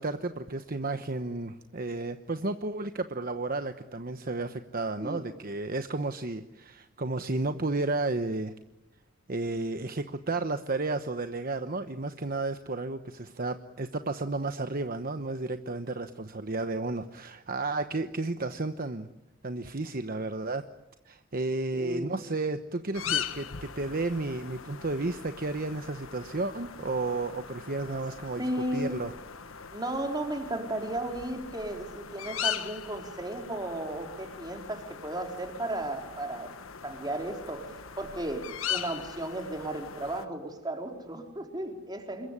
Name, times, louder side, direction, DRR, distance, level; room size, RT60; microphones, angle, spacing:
voice 1, 0.0-8.5 9.3-19.1 19.4-20.6 21.0-28.4 28.7-29.1, right 2 dB, 45° right, 8 dB, 1.1 m, -32 dB
voice 2, 21.7-22.2 28.4-29.0 29.7-36.5 36.8-42.3, right 1 dB, 20° right, 4 dB, 3.9 m, -34 dB
sound 1, 22.9-40.3, left 8 dB, 80° left, 1.5 m, -40 dB
27.0 x 22.5 x 9.8 m, 0.93 s
head